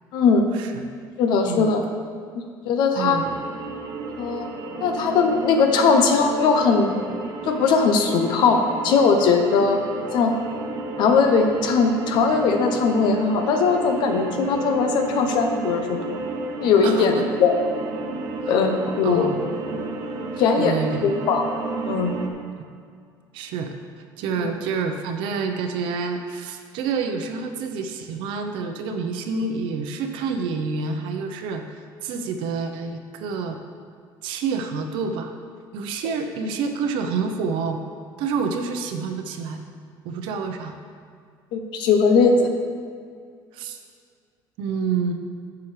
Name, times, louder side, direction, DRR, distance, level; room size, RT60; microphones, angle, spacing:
voice 1, 0.1-0.5 1.2-1.8 2.6-3.2 4.2-4.5 4.8-7.0 7.5-9.8 10.1-10.3 11.0-15.9 16.6-17.6 18.5-19.3 20.4-20.7 21.0-21.5 21.9-22.1 24.4-24.5 41.5-42.5, left 5 dB, 65° left, 4 dB, 0.8 m, -19 dB
sound 1, 3.0-22.3, right 3 dB, 55° right, 1.0 m, -32 dB
voice 2, 3.0-3.3 16.8-17.2 18.4-18.5 19.0-19.5 20.6-21.1 23.3-23.7 24.2-33.6 34.2-35.3 35.7-37.8 38.2-39.6 40.0-40.7 43.5-43.8 44.6-45.1, right 5 dB, 80° right, 5 dB, 0.8 m, -28 dB
10.5 x 7.1 x 3.3 m, 2.2 s
cardioid pair, 160°, 8 cm